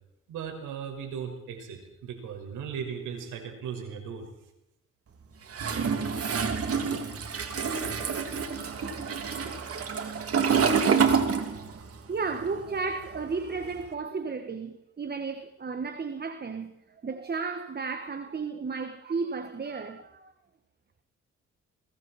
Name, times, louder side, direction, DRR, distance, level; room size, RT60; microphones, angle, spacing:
voice 1, 0.3-4.3, right 7 dB, 85° right, 5.5 m, -37 dB
Toilet flush, 5.5-12.0 12.2-13.8, right 6 dB, 50° right, 2.8 m, -27 dB
voice 2, 12.1-20.3, right 4 dB, 35° right, 1.7 m, -33 dB
29.5 x 21.0 x 4.4 m
cardioid pair, 90°, 30 cm